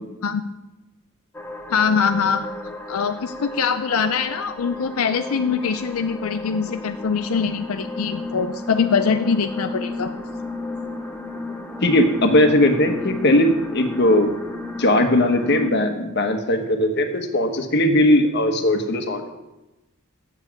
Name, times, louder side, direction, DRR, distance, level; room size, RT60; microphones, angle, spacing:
sound 1, 1.3-15.7, left 2 dB, 10° left, 0.8 m, -33 dB
voice 1, 1.7-10.1, left 6 dB, 90° left, 9 dB, 0.5 m, -23 dB
voice 2, 11.8-14.3 14.8-19.3, left 1 dB, 55° left, 6 dB, 1.2 m, -19 dB
8.2 x 7.4 x 7.2 m, 1.0 s
head